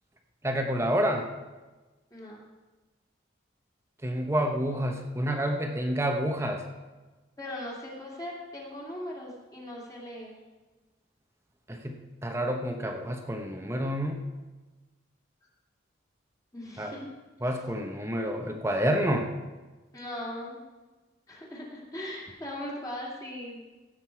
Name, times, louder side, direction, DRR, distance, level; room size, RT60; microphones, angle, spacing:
voice 1, 0.4-1.3 4.0-6.6 11.7-14.2 16.8-17.0 17.4-19.3, equal, 15° right, 3 dB, 0.9 m, -29 dB
voice 2, 2.1-2.4 7.4-10.3 16.5-17.1 19.9-20.6 21.3-23.7, left 1 dB, 20° left, -4 dB, 2.4 m, -39 dB
16.5 x 7.6 x 4.6 m, 1.2 s
head